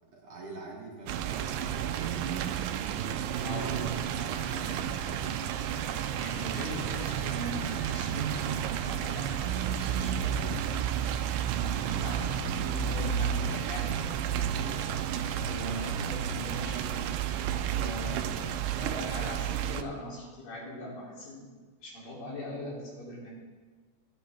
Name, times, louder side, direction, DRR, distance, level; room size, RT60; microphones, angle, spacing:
voice 1, 0.1-2.8, right 3 dB, 55° right, -2 dB, 1.8 m, -46 dB
sound 1, 1.1-19.8, right 9 dB, 80° right, 2.1 m, -31 dB
sound 2, 3.3-10.0, left 1 dB, 50° left, 2.3 m, -50 dB
voice 2, 3.4-5.3 6.2-10.5 11.5-14.8 15.5-17.0 17.7-21.5 21.8-23.3, left 1 dB, 90° left, -5 dB, 4.7 m, -41 dB
sound 3, 14.5-17.6, right 2 dB, 35° right, 2.2 m, -53 dB
14.5 x 10.5 x 3.4 m, 1.4 s
omnidirectional pair, 3.9 m